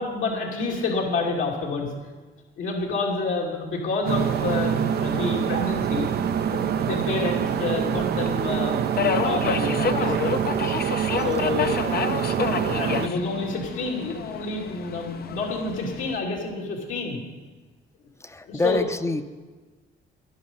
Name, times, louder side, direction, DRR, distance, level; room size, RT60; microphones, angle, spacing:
voice 1, 0.0-1.9 2.6-6.1 6.5-10.7 11.2-11.8 12.7-17.2 18.5-18.9, left 3 dB, 80° left, -2 dB, 2.8 m, -29 dB
sound 1, 4.1-13.1, right 9 dB, 55° right, 0.4 m, -25 dB
Subway metro underground, 4.2-16.2, left 7 dB, 50° left, 0.6 m, -31 dB
voice 2, 18.2-19.2, left 2 dB, 15° left, 11 dB, 0.6 m, -26 dB
11.5 x 10.5 x 5.5 m, 1.3 s
cardioid pair, 90°, 20 cm